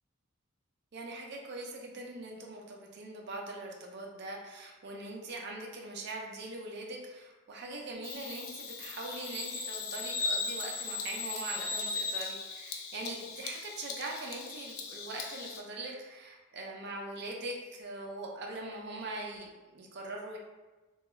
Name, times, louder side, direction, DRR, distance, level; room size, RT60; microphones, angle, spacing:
voice 1, 0.9-20.4, right 2 dB, 50° right, 0 dB, 0.4 m, -42 dB
Bird vocalization bird call bird song, 8.0-15.6, left 4 dB, 80° left, 0.3 m, -38 dB
2.3 x 2.3 x 2.9 m, 1.2 s
head